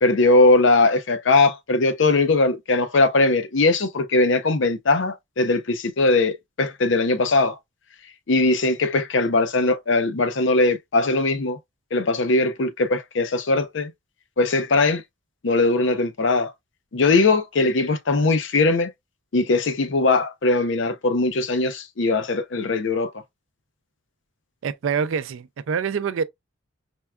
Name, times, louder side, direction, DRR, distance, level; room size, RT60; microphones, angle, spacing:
voice 1, 0.0-7.6 8.3-11.6 11.9-13.9 14.4-15.0 15.4-16.5 16.9-18.9 19.3-23.1, left 3 dB, 65° left, 0.6 m, -20 dB
voice 2, 24.6-26.2, right 6 dB, 80° right, 0.4 m, -25 dB
4.5 x 2.2 x 2.3 m
head